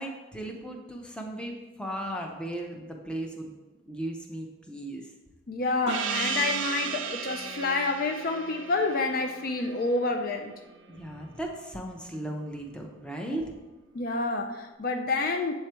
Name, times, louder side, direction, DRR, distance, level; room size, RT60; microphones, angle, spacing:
voice 1, 0.0-3.5 3.9-5.1 10.9-13.5, right 1 dB, 5° left, 1 dB, 0.6 m, -36 dB
voice 2, 5.5-10.5 13.9-15.5, left 3 dB, 50° left, 5 dB, 0.4 m, -28 dB
Gong, 5.9-10.9, right 6 dB, 85° right, 0.5 m, -35 dB
7.5 x 3.2 x 4.4 m, 1.2 s
head